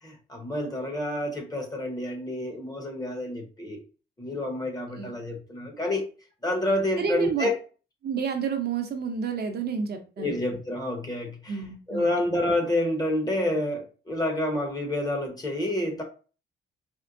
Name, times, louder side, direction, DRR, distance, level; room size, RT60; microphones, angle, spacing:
voice 1, 0.0-3.8 4.2-6.1 6.4-7.6 10.2-11.6 11.9-16.0, left 1 dB, 20° left, 1.0 m, -28 dB
voice 2, 7.0-7.5 8.0-10.4 11.5-12.1, right 6 dB, 50° right, 0.7 m, -30 dB
4.4 x 2.1 x 2.5 m
cardioid pair, 110°, 20 cm